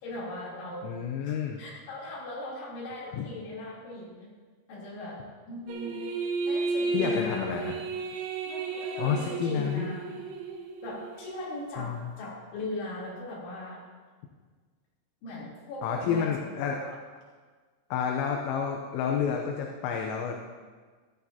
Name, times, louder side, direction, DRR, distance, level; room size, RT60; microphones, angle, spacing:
voice 1, 0.0-0.9 1.2-4.3 4.7-6.0 6.4-7.5 8.5-10.0 10.8-13.8 15.2-17.0, left 1 dB, 65° left, -7 dB, 5.7 m, -39 dB
voice 2, 0.8-1.6 3.2-3.3 6.9-7.8 9.0-9.9 11.8-12.0 15.8-16.8 17.9-20.4, left 7 dB, 85° left, 2 dB, 3.4 m, -29 dB
sound 1, 5.7-11.6, right 3 dB, 75° right, 3.4 m, -33 dB
15.0 x 13.5 x 2.9 m, 1.5 s
omnidirectional pair, 5.8 m